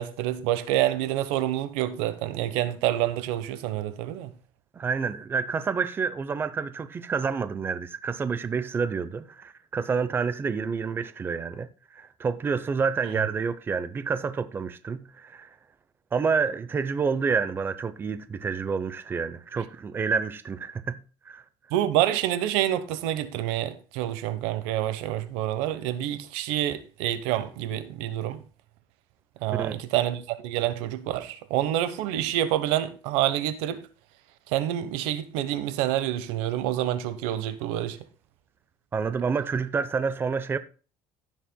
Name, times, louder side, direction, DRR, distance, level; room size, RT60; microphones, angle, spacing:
voice 1, 0.0-4.3 21.7-28.4 29.4-33.8 34.5-38.0, right 13 dB, 90° right, 1.0 m, -27 dB
voice 2, 4.7-15.6 16.1-21.4 29.6-29.8 38.9-40.6, right 5 dB, 20° right, 0.6 m, -28 dB
16.0 x 7.4 x 2.2 m
cardioid pair, 135°, 10 cm